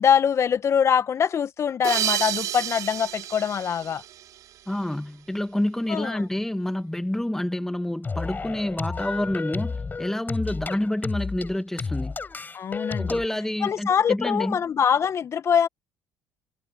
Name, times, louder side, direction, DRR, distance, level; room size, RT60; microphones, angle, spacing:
voice 1, 0.0-4.0 5.9-6.2 12.5-13.2 13.6-15.7, left 8 dB, 45° left, 1.8 m, -23 dB
sound 1, 1.8-4.9, right 12 dB, 60° right, 3.9 m, -30 dB
voice 2, 4.7-12.2 13.0-14.6, left 1 dB, 5° left, 1.8 m, -28 dB
sound 2, 8.0-13.3, left 4 dB, 30° left, 6.2 m, -31 dB
hypercardioid pair, 60°, 7 cm